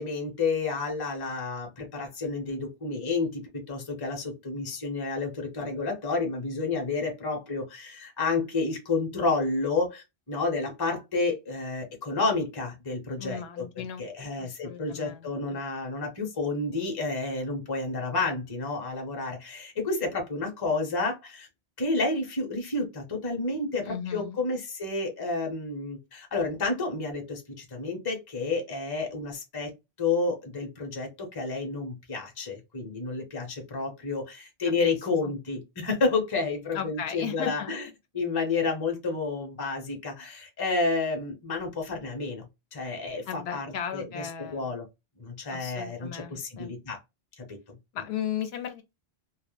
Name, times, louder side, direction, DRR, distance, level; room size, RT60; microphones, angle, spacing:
voice 1, 0.0-13.7 14.0-21.5 21.8-29.7 30.0-37.8 38.1-42.4 42.7-44.9 45.2-47.0 47.4-47.8, left 3 dB, 25° left, 0.6 m, -30 dB
voice 2, 13.2-14.0 14.4-15.3 23.8-24.4 34.8-35.0 35.2-35.3 36.7-37.7 43.3-44.8 45.5-46.7 47.9-48.8, left 8 dB, 75° left, 0.9 m, -36 dB
2.2 x 2.0 x 2.9 m
omnidirectional pair, 1.1 m